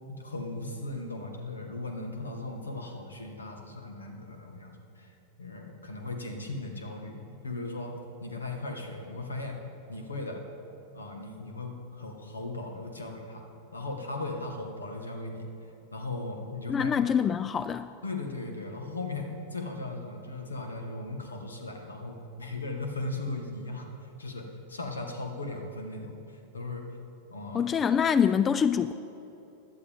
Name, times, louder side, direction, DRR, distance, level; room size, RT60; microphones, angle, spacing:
voice 1, 0.1-5.1 5.4-9.6 9.9-10.4 10.9-13.4 13.7-15.5 15.9-16.9 18.0-26.8 27.3-27.7, left 2 dB, 75° left, 3 dB, 1.6 m, -37 dB
voice 2, 16.7-17.9 27.5-28.9, left 7 dB, 20° left, 13 dB, 0.3 m, -25 dB
17.0 x 11.5 x 3.6 m, 3.0 s
figure-of-eight pair, 90°, 0 cm